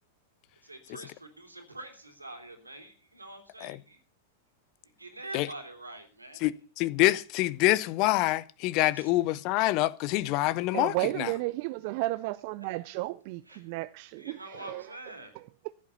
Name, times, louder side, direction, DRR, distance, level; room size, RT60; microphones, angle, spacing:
voice 1, 0.6-4.0 5.0-6.5 8.9-9.1 13.5-13.6 14.2-15.3, right 2 dB, 90° right, 3.1 m, -45 dB
voice 2, 6.4-11.3, left 17 dB, 45° left, 0.7 m, -26 dB
voice 3, 10.7-15.0 15.3-15.7, right 20 dB, 50° right, 0.5 m, -33 dB
14.5 x 8.6 x 6.9 m
figure-of-eight pair, 95°, 0 cm